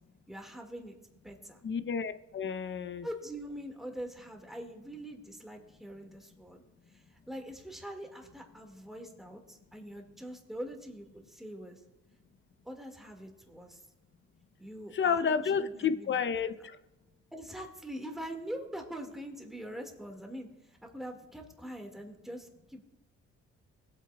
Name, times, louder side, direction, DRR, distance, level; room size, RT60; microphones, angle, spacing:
voice 1, 0.3-1.0 1.2-1.6 3.0-11.8 12.7-13.8 14.6-16.2 17.3-22.8, equal, ahead, 2 dB, 1.8 m, -43 dB
voice 2, 1.6-3.1 14.9-16.5, left 6 dB, 40° left, 12 dB, 0.6 m, -30 dB
19.0 x 8.2 x 2.3 m, 1.0 s
cardioid pair, 90°, 30 cm